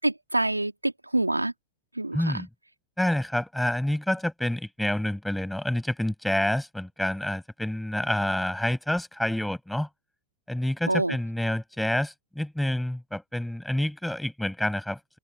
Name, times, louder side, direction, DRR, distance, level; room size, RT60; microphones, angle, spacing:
voice 1, 0.0-1.5 1.9-2.4 10.9-11.2, right 2 dB, 85° right, 3.3 m, -26 dB
voice 2, 2.1-2.5 3.0-9.9 10.5-15.2, left 1 dB, ahead, 7.3 m, -28 dB
figure-of-eight pair, 90°, 0 cm